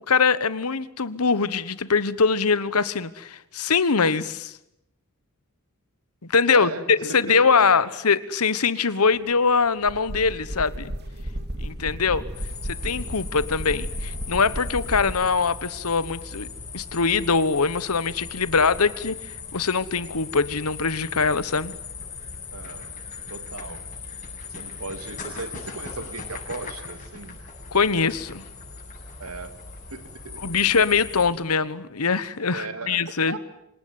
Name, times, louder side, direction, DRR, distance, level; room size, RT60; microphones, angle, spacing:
voice 1, 0.1-4.5 6.3-10.9 11.6-12.3 12.7-16.5 16.7-19.2 19.5-21.7 27.7-28.4 30.4-33.4, left 5 dB, 80° left, 16 dB, 1.2 m, -22 dB
voice 2, 6.5-7.0 7.3-7.9 22.5-22.9 23.3-23.8 24.6-27.4 29.2-29.5 29.9-30.7 32.5-33.4, right 3 dB, 75° right, 10 dB, 2.4 m, -37 dB
sound 1, 9.0-15.3, equal, 50° right, 2.6 m, -34 dB
sound 2, 12.3-31.3, left 5 dB, 35° left, 7.9 m, -39 dB
26.5 x 19.0 x 9.6 m, 0.83 s
head